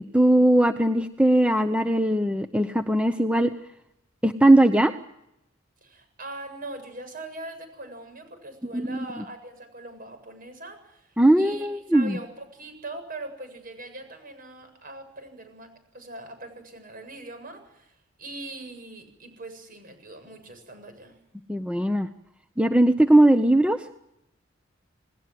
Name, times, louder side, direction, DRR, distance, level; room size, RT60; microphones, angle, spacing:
voice 1, 0.1-3.5 4.2-4.9 8.7-9.0 11.2-12.2 21.5-22.1 22.6-23.8, right 1 dB, 5° right, 8 dB, 0.9 m, -19 dB
voice 2, 5.8-21.2, right 2 dB, 45° right, 7 dB, 7.5 m, -41 dB
29.0 x 19.5 x 7.8 m, 0.85 s
head